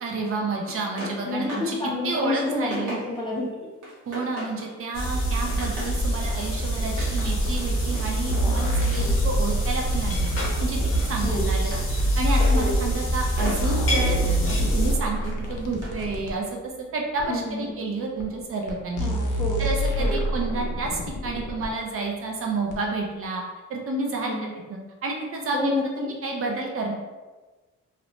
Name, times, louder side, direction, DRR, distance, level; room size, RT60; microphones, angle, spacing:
voice 1, 0.0-1.8 2.0-3.0 4.1-10.3 10.6-10.8 11.1-19.1 19.6-23.4 23.7-26.9, right 3 dB, 50° right, 0 dB, 0.4 m, -30 dB
sound 1, 0.6-1.8 2.1-3.4 3.8-4.7 5.1-6.0 6.8-9.8 10.1-16.2, equal, 90° right, 1.1 m, -39 dB
voice 2, 1.2-3.7 9.0-9.2 11.2-11.4 12.5-12.8 17.3-17.7 19.0-19.6 20.0-20.2 24.3-24.5 25.5-26.1, left 2 dB, 15° left, -4 dB, 0.3 m, -29 dB
sound 2, 4.9-14.9, right 1 dB, 45° left, 0.7 m, -25 dB
sound 3, 8.3-11.0 12.0-12.1 12.9-13.0 13.4-16.4 17.2-17.3 18.2-18.3 18.7-18.8 19.0-21.7 22.7-22.8, equal, 90° left, 0.6 m, -27 dB
2.7 x 2.0 x 2.8 m, 1.3 s
wide cardioid pair, 175°, 30 cm